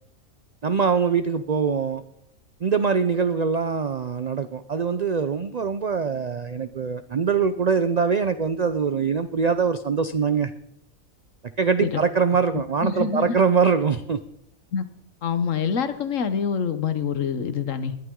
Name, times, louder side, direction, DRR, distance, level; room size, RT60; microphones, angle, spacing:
voice 1, 0.6-2.0 2.6-10.5 11.6-14.2, right 6 dB, 65° right, 11 dB, 0.4 m, -23 dB
voice 2, 12.5-13.4 14.7-14.9 15.2-18.0, left 6 dB, 65° left, 11 dB, 1.3 m, -26 dB
20.5 x 11.0 x 3.7 m, 0.77 s
omnidirectional pair, 1.4 m